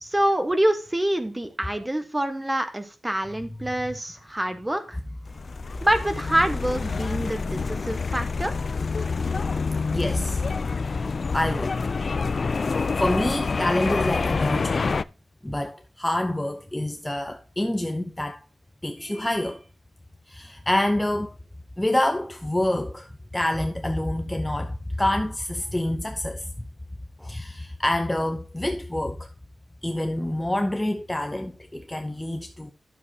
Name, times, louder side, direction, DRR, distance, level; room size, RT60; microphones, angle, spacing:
voice 1, 0.0-5.0 5.8-8.5, right 1 dB, 15° right, 1.3 m, -26 dB
sound 1, 5.3-15.0, left 4 dB, 45° left, 0.3 m, -27 dB
voice 2, 9.9-10.4 11.3-11.8 13.0-14.9 15.4-18.4 18.8-19.6 20.3-21.4 21.8-26.5 27.2-29.3 29.8-32.7, left 1 dB, 10° left, 0.7 m, -27 dB
11.0 x 7.1 x 2.8 m
wide cardioid pair, 130°, 0 cm